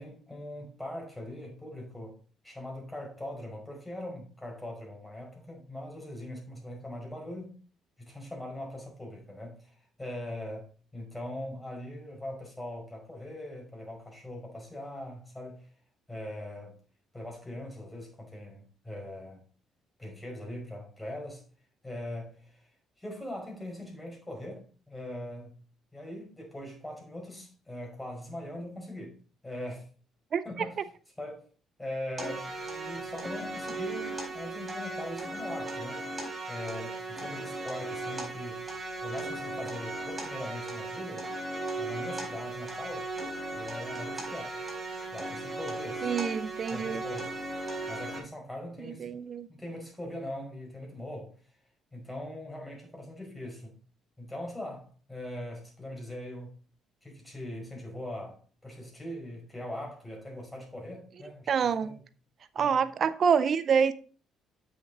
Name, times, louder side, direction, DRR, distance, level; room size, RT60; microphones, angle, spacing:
voice 1, 0.0-2.2 2.4-7.5 8.0-15.7 16.1-16.8 17.1-19.4 20.0-21.4 21.8-22.7 23.0-25.6 25.9-29.2 29.4-29.9 30.4-30.8 31.2-31.5 31.8-36.0 36.5-38.6 39.0-41.3 41.8-43.1 43.5-44.6 45.1-46.1 46.7-47.3 47.9-49.1 49.5-51.3 51.9-53.7 54.2-56.5 57.0-62.0 62.6-62.7, left 1 dB, 10° left, 5.1 m, -41 dB
sound 1, 32.2-48.2, right 2 dB, 20° right, 4.8 m, -37 dB
voice 2, 46.0-47.0 48.9-49.5 61.5-62.0 62.6-63.9, right 6 dB, 55° right, 0.6 m, -26 dB
7.8 x 6.7 x 4.1 m
supercardioid pair, 70°, 0 cm